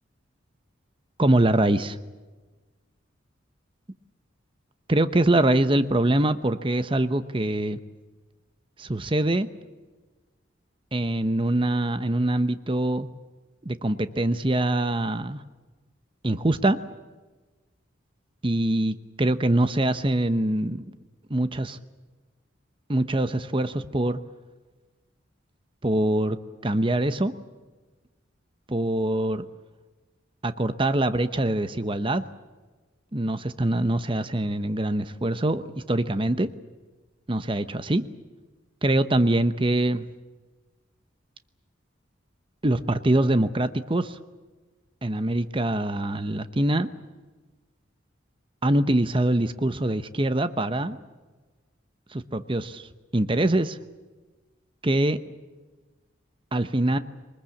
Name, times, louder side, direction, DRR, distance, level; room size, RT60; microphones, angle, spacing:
voice 1, 1.2-2.0 4.9-7.8 8.8-9.5 10.9-13.1 13.6-15.4 16.2-16.8 18.4-20.8 21.3-21.8 22.9-24.2 25.8-26.4 26.6-27.3 28.7-29.5 30.4-32.2 33.1-35.6 35.9-36.5 37.3-38.0 38.8-40.0 42.6-44.2 45.0-46.9 48.6-51.0 52.1-53.8 54.8-55.2 56.5-57.0, right 1 dB, 25° right, 11 dB, 0.9 m, -24 dB
24.0 x 20.5 x 8.5 m, 1.2 s
head